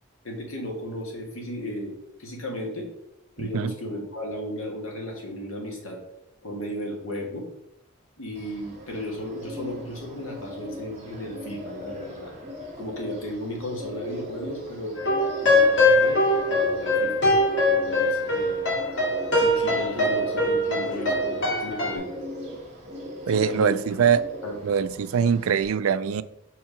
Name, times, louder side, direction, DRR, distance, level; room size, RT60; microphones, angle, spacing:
voice 1, 0.2-1.9 2.2-2.9 3.4-6.0 6.4-7.5 8.2-12.3 12.8-15.0 15.4-16.2 16.5-17.2 17.7-18.6 19.4-22.2 23.3-24.0 24.4-24.6, equal, 75° left, 0 dB, 2.1 m, -35 dB
voice 2, 3.4-3.7 23.3-24.2 24.6-26.2, right 7 dB, 80° right, 15 dB, 0.4 m, -23 dB
Bird, 8.3-25.6, equal, 30° right, 1.9 m, -39 dB
sound 1, 15.0-21.9, left 1 dB, 60° left, 2.2 m, -22 dB
5.6 x 4.7 x 5.7 m, 0.84 s
head